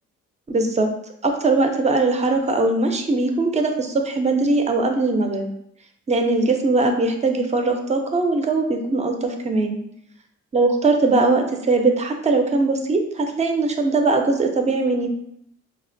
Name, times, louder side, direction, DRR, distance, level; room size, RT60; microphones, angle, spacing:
voice 1, 0.5-0.9 1.2-5.5 6.1-9.8 10.5-15.1, right 3 dB, 25° right, 4 dB, 0.5 m, -20 dB
4.7 x 2.1 x 2.6 m, 0.74 s
cardioid pair, 90°, 30 cm